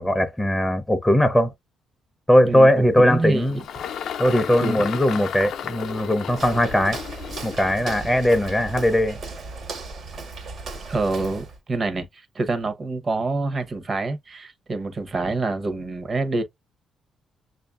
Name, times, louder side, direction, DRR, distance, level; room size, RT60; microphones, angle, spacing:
voice 1, 0.0-1.5 2.3-3.6 4.2-7.0 7.4-9.2, equal, 5° left, 0.6 m, -19 dB
Engine, 2.8-9.4, left 8 dB, 70° left, 0.5 m, -34 dB
voice 2, 3.0-3.6 4.6-4.8 10.9-16.4, right 3 dB, 40° right, 0.9 m, -26 dB
Walk footsteps, 6.3-11.6, right 3 dB, 60° right, 1.3 m, -36 dB
6.5 x 2.5 x 2.3 m
cardioid pair, 90°, 0 cm